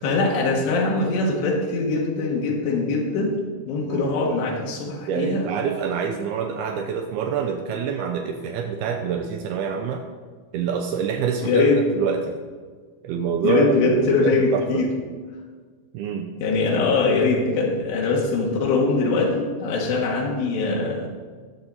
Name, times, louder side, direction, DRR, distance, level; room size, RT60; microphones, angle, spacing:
voice 1, 0.0-3.4 3.7-5.5 11.4-11.8 13.4-14.9 16.4-21.1, left 3 dB, 90° left, -2 dB, 3.7 m, -22 dB
voice 2, 3.9-4.4 5.1-10.0 10.5-11.7 12.0-12.4 13.0-14.8 15.9-16.3, right 6 dB, 80° right, 4 dB, 2.6 m, -26 dB
19.5 x 7.3 x 4.1 m, 1.5 s
omnidirectional pair, 4.8 m